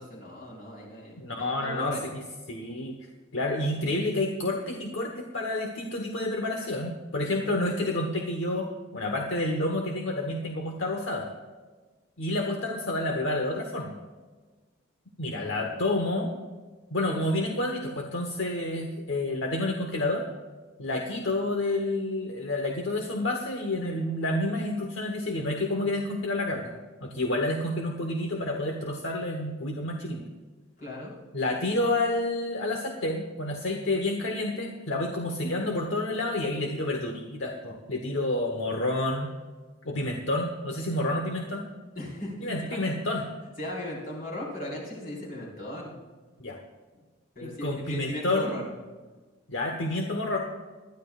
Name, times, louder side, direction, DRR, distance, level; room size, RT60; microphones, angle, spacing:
voice 1, 0.0-2.0 15.2-15.7 30.8-31.1 41.9-43.2 43.6-45.9 46.9-47.0 47.3-48.7, left 1 dB, 45° left, -4 dB, 4.4 m, -38 dB
voice 2, 1.2-2.2 2.5-2.9 3.3-8.7 8.9-11.3 12.2-14.0 15.2-16.3 16.9-20.3 20.8-26.7 27.0-30.2 31.3-39.3 39.8-41.7 42.4-43.3 46.4-46.6 47.4-48.5 49.5-50.4, left 1 dB, 65° left, 2 dB, 1.2 m, -29 dB
20.5 x 12.0 x 2.4 m, 1.3 s
head